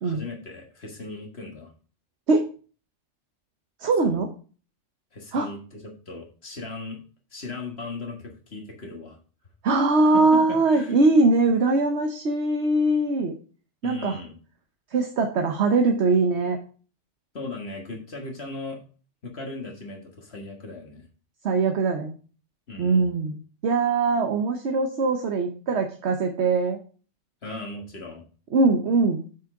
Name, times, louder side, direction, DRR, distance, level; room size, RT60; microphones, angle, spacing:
voice 1, 0.0-1.7 4.0-4.2 5.1-7.0 7.3-9.2 10.1-11.0 13.8-14.4 17.3-18.8 19.2-21.0 22.7-23.1 27.4-28.2, left 3 dB, 60° left, 2 dB, 1.8 m, -37 dB
voice 2, 3.8-4.3 5.3-5.5 9.6-13.3 13.8-14.2 14.9-16.6 21.4-22.1 22.8-26.8 28.5-29.2, right 3 dB, 65° right, 4 dB, 1.2 m, -22 dB
7.5 x 6.1 x 4.8 m, 0.39 s
omnidirectional pair, 1.2 m